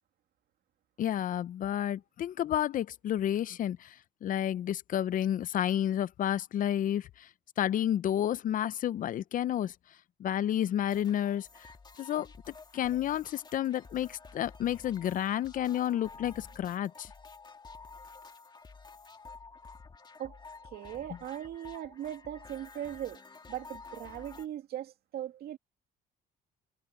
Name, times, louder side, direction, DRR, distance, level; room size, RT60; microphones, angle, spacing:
voice 1, 1.0-3.9 4.2-7.3 7.6-9.7 10.2-11.5 12.0-12.3 12.7-17.1, left 11 dB, 50° left, 0.7 m, -30 dB
sound 1, 10.9-24.5, left 4 dB, 25° left, 2.1 m, -51 dB
voice 2, 20.6-23.2 23.5-25.6, right 11 dB, 70° right, 2.4 m, -39 dB
cardioid pair, 110°, 17 cm